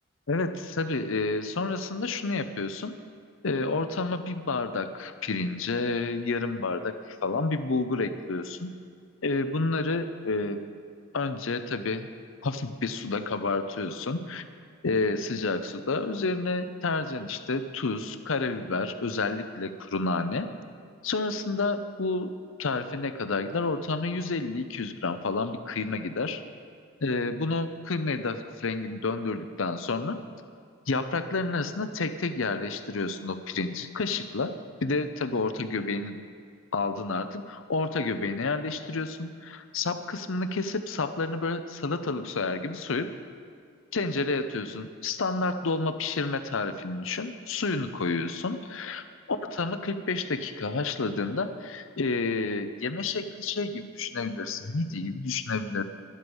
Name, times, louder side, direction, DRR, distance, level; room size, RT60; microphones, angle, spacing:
voice 1, 0.3-2.9 3.4-8.7 9.2-10.6 11.1-12.1 12.4-14.4 14.8-20.5 21.0-22.3 22.6-26.4 27.0-30.2 30.9-34.5 34.8-36.2 36.7-43.1 43.9-55.8, left 3 dB, 65° left, 10 dB, 0.7 m, -30 dB
13.0 x 11.0 x 5.4 m, 2.3 s
head